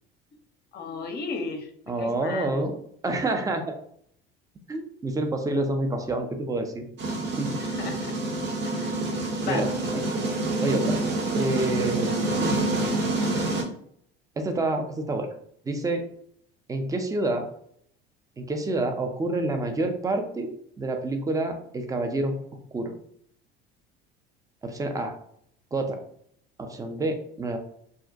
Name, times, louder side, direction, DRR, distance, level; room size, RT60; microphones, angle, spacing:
voice 1, 0.7-1.7 2.0-2.6 7.6-8.1 8.6-9.0 9.4-9.7, left 4 dB, 35° left, 5 dB, 0.6 m, -34 dB
voice 2, 1.9-2.7 3.0-3.8 4.7-6.8 7.4-7.5 9.4-10.0 10.6-10.9 11.4-12.2 14.4-15.3 15.7-16.0 16.7-17.4 18.4-22.3 22.7-22.9 24.6-25.1 25.7-26.0 26.6-27.6, right 2 dB, 10° right, 5 dB, 0.4 m, -28 dB
sound 1, 7.0-13.6, right 2 dB, 40° right, 0.8 m, -27 dB
2.4 x 2.1 x 2.6 m, 0.67 s
hypercardioid pair, 70°, 29 cm